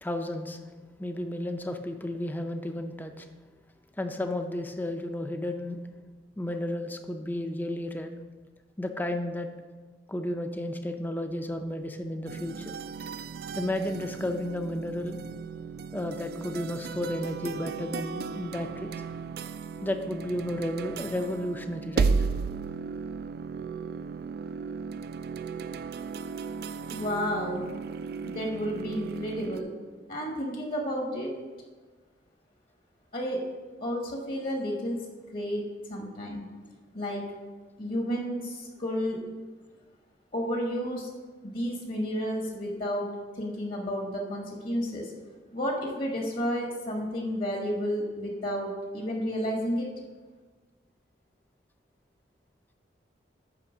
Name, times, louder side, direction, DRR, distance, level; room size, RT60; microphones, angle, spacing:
voice 1, 0.0-0.6 1.0-3.3 4.0-5.8 6.4-8.1 8.8-9.5 10.1-12.7 13.6-15.2 15.9-19.0 19.8-22.1, left 1 dB, 10° left, 6 dB, 0.4 m, -32 dB
sound 1, 12.3-29.6, right 5 dB, 55° right, 0.3 m, -35 dB
voice 2, 26.9-27.6 28.2-29.7 30.1-31.3 33.1-33.4 33.8-35.0 35.3-35.6 35.9-36.5 36.9-37.2 37.8-39.2 40.3-41.1 41.4-43.1 43.3-45.1 45.5-49.9, equal, 50° left, 1 dB, 1.1 m, -31 dB
9.9 x 3.4 x 6.0 m, 1.4 s
head